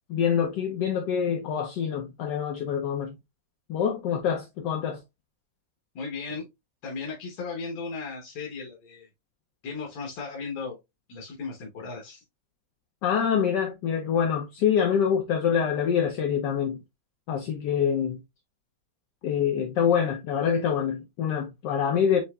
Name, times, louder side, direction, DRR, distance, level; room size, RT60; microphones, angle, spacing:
voice 1, 0.1-3.2 3.7-5.0 13.0-16.8 17.3-18.2 19.2-22.2, left 8 dB, 70° left, 1.2 m, -25 dB
voice 2, 6.0-6.4 6.8-9.1 9.6-10.8 11.1-12.2, left 4 dB, 90° left, 2.0 m, -36 dB
7.9 x 2.8 x 2.3 m
omnidirectional pair, 2.1 m